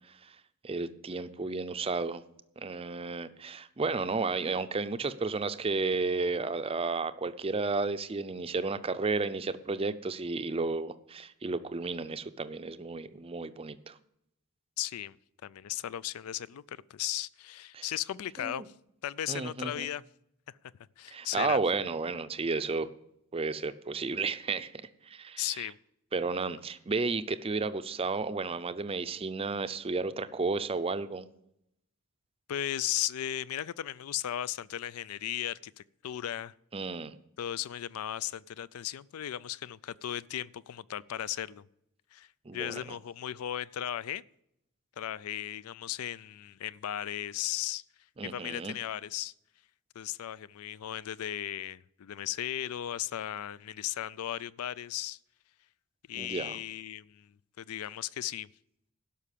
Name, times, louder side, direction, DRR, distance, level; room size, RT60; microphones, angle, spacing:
voice 1, 0.6-2.2 2.6-14.0 17.7-17.8 18.4-18.7 19.3-19.9 21.1-22.9 23.3-25.7 26.1-31.3 36.7-37.2 42.5-43.0 48.2-48.7 56.1-56.6, right 3 dB, 25° right, 0.5 m, -32 dB
voice 2, 14.8-15.2 15.4-18.6 19.0-20.0 21.0-21.6 25.4-25.8 32.5-36.5 37.4-41.7 42.1-44.2 45.0-47.8 48.2-49.3 50.0-55.2 56.1-57.3 57.6-58.5, left 11 dB, 80° left, 0.4 m, -36 dB
12.0 x 5.7 x 8.4 m
head